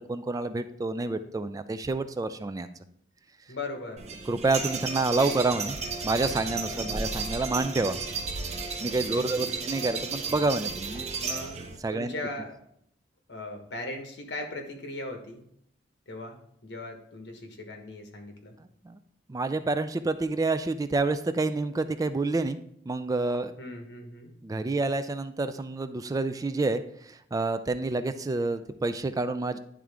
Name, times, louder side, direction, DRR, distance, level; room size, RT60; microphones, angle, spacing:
voice 1, 0.0-2.7 4.3-5.8 6.0-8.0 8.8-11.1 11.8-12.1 18.8-19.0 19.3-23.5 24.4-29.6, right 3 dB, 20° right, 10 dB, 0.3 m, -28 dB
voice 2, 3.5-4.1 6.7-7.0 9.1-9.7 11.1-11.6 11.9-12.6 13.3-15.4 16.1-18.6 23.6-24.4, left 2 dB, 75° left, 4 dB, 1.2 m, -39 dB
sound 1, 4.0-11.8, right 4 dB, 40° right, 0.8 m, -33 dB
10.5 x 3.7 x 3.4 m, 0.70 s
head